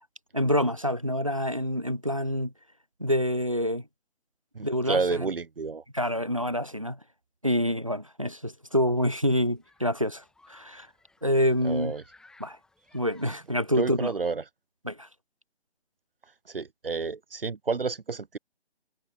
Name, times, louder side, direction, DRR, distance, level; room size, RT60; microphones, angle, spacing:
voice 1, 0.3-2.5 3.0-3.8 4.6-5.3 5.9-7.0 7.4-10.2 10.5-10.9 11.2-11.9 12.4-12.6 12.9-14.1 14.8-15.1, equal, 30° right, 0.4 m, -27 dB
voice 2, 4.5-5.8 11.6-12.0 13.2-13.3 13.7-14.4 16.5-18.4, right 4 dB, 55° right, 1.4 m, -30 dB
Human group actions, 9.0-14.0, left 3 dB, ahead, 3.8 m, -61 dB
figure-of-eight pair, 150°, 34 cm